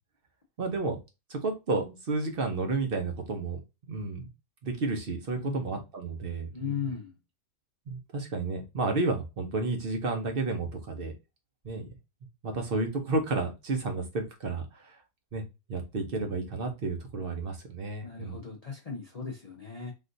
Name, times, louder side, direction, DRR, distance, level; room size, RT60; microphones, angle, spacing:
voice 1, 0.6-1.0 1.3-3.6 3.9-4.3 4.6-6.7 7.9-11.1 11.6-11.9 12.4-15.0 15.3-15.4 15.7-18.4, right 3 dB, 50° right, 0.7 m, -31 dB
voice 2, 5.4-5.8 6.5-7.2 18.0-19.9, left 6 dB, 45° left, 0.5 m, -37 dB
3.6 x 2.4 x 2.6 m
omnidirectional pair, 1.6 m